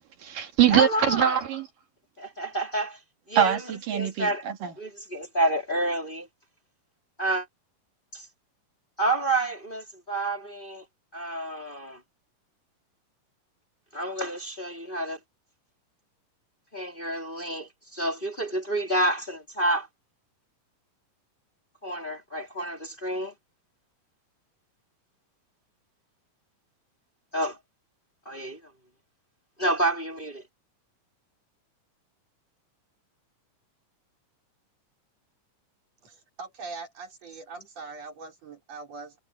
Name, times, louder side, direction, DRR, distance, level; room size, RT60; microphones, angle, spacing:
voice 1, 0.2-1.7 3.4-4.7, right 10 dB, 80° right, 3.7 m, -23 dB
voice 2, 0.7-1.4 2.2-3.0 3.3-3.6 3.9-4.4 4.8-6.3 7.2-7.5 8.1-8.2 9.0-10.8 11.1-12.0 13.9-15.2 16.7-19.9 21.8-23.3 27.3-27.6 28.2-28.6 29.6-30.4, right 1 dB, 15° left, 3.2 m, -29 dB
voice 3, 36.0-39.2, right 4 dB, 50° right, 4.9 m, -42 dB
omnidirectional pair, 3.8 m